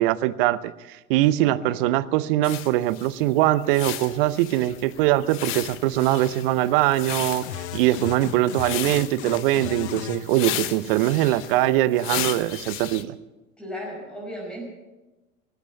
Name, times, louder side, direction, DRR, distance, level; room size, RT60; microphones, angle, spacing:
voice 1, 0.0-7.4 7.7-13.2, right 15 dB, 40° right, 16 dB, 0.7 m, -22 dB
voice 2, 1.4-1.8 13.6-14.7, equal, ahead, -2 dB, 5.3 m, -36 dB
sound 1, 2.4-13.0, left 13 dB, 30° left, 0.8 m, -35 dB
sound 2, 3.8-11.9, right 2 dB, 80° right, 7.5 m, -52 dB
sound 3, 7.4-10.2, left 9 dB, 50° left, 1.0 m, -34 dB
18.5 x 8.3 x 8.4 m, 1.1 s
figure-of-eight pair, 90°, 43 cm